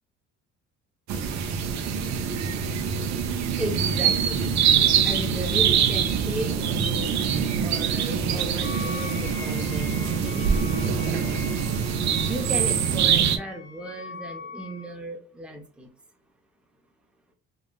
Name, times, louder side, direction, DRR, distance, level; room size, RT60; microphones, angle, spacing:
sound 1, 1.1-13.4, right 7 dB, 60° right, 0.6 m, -24 dB
voice 1, 3.6-4.4 5.0-11.4 12.3-15.9, right 1 dB, 5° right, 2 dB, 0.7 m, -36 dB
Wind instrument woodwind instrument, 8.6-14.9, left 5 dB, 45° left, 0.5 m, -41 dB
3.6 x 2.4 x 2.3 m, 0.37 s
cardioid pair, 95°, 30 cm